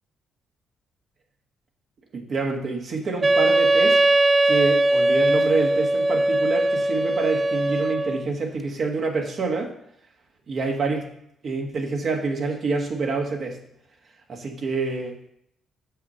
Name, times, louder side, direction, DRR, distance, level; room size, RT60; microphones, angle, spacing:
voice 1, 2.1-4.0 4.4-9.7 10.5-11.1 11.4-13.6 14.3-15.2, right 4 dB, 55° right, 1 dB, 1.4 m, -27 dB
Wind instrument woodwind instrument, 3.2-8.3, right 1 dB, 25° right, 0.3 m, -20 dB
6.1 x 5.6 x 5.6 m, 0.72 s
cardioid pair, 90°, 0 cm